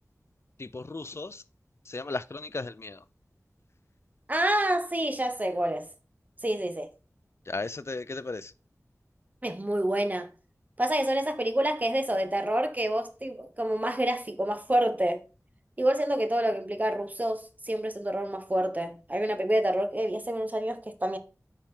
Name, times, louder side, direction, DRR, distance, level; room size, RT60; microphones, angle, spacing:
voice 1, 0.6-1.4 1.9-3.0 7.5-8.5, left 3 dB, 50° left, 0.5 m, -35 dB
voice 2, 4.3-5.9 6.4-6.9 9.4-10.3 10.8-15.2 15.8-21.2, right 1 dB, 30° right, 1.0 m, -28 dB
8.8 x 4.7 x 3.8 m
wide cardioid pair, 55°, 6 cm